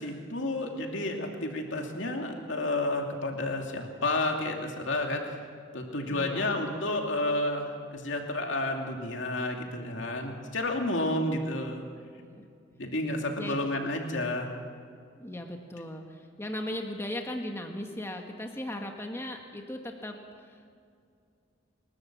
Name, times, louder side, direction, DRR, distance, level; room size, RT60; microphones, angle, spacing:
voice 1, 0.0-5.4 5.7-11.9 12.7-14.5, left 2 dB, 70° left, 2 dB, 2.6 m, -31 dB
voice 2, 6.1-6.7 12.2-12.4 13.4-13.6 15.2-20.7, left 1 dB, 15° left, 3 dB, 1.6 m, -38 dB
29.5 x 13.0 x 7.5 m, 2.3 s
head